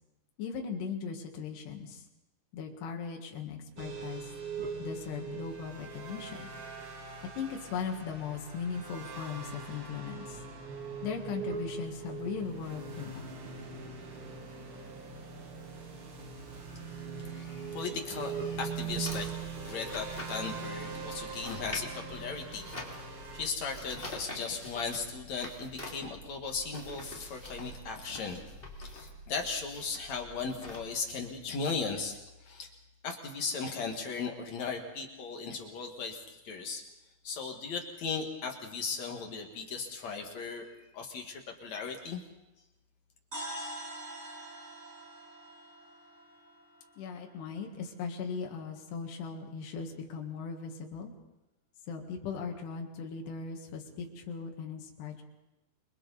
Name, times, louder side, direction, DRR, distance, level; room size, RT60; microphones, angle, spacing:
voice 1, 0.4-2.0 2.5-4.3 4.8-6.5 7.3-10.4 11.0-13.3 47.0-51.1 51.9-55.2, left 6 dB, 75° left, 1 dB, 3.9 m, -38 dB
sound 1, 3.8-23.5, right 5 dB, 45° right, 2.0 m, -41 dB
voice 2, 17.2-19.3 19.6-28.5 28.8-32.7 33.0-36.8 37.2-40.7 40.9-42.2, left 5 dB, 50° left, 3 dB, 2.5 m, -37 dB
sound 2, 18.9-30.8, equal, 15° left, 3.0 m, -46 dB
sound 3, 43.3-47.3, right 1 dB, 20° right, 4.1 m, -44 dB
28.5 x 22.5 x 4.1 m, 0.97 s
omnidirectional pair, 4.9 m